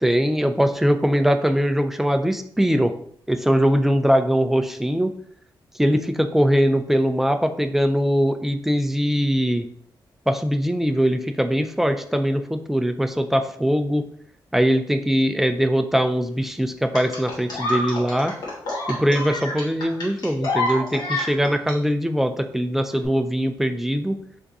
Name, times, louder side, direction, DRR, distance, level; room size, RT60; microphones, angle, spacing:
voice 1, 0.0-2.9 3.3-5.1 5.8-9.7 10.3-14.1 14.5-18.3 18.9-24.2, equal, 5° right, 7 dB, 0.3 m, -21 dB
sound 1, 16.9-21.7 22.9-23.0, left 2 dB, 55° left, 1.6 m, -27 dB
3.7 x 3.4 x 4.0 m, 0.63 s
wide cardioid pair, 160°, 8 cm